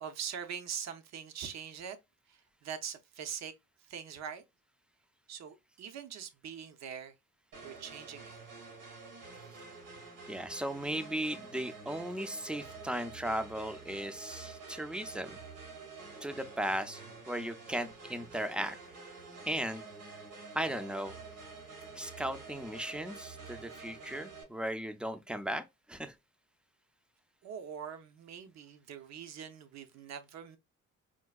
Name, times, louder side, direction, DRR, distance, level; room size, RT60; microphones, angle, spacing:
voice 1, 0.0-2.0 2.3-3.5 3.9-4.4 5.3-7.1 7.6-8.4 27.4-30.6, right 8 dB, 60° right, 0.7 m, -43 dB
sound 1, 7.5-24.4, right 4 dB, 85° right, 1.9 m, -48 dB
voice 2, 10.3-15.4 16.2-18.8 19.5-19.8 20.5-21.2 22.0-25.6 25.9-26.1, right 1 dB, 5° right, 0.4 m, -36 dB
4.6 x 2.2 x 2.3 m
cardioid pair, 90°, 30 cm